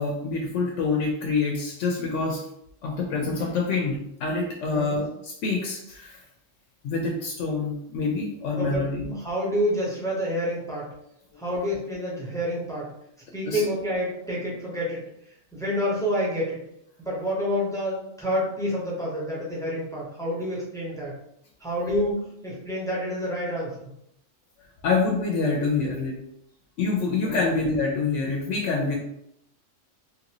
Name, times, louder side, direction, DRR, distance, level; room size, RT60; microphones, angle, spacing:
voice 1, 0.0-2.4 2.8-6.2 6.8-9.0 13.5-13.6 21.8-22.0 24.8-26.2 26.8-29.0, left 4 dB, 85° left, 0 dB, 0.9 m, -26 dB
voice 2, 4.7-5.0 8.6-10.9 11.4-12.9 13.3-15.0 15.5-16.6 17.0-21.2 21.6-23.9 27.2-27.5, equal, 5° left, -6 dB, 0.8 m, -28 dB
3.2 x 2.5 x 2.9 m, 0.77 s
omnidirectional pair, 1.2 m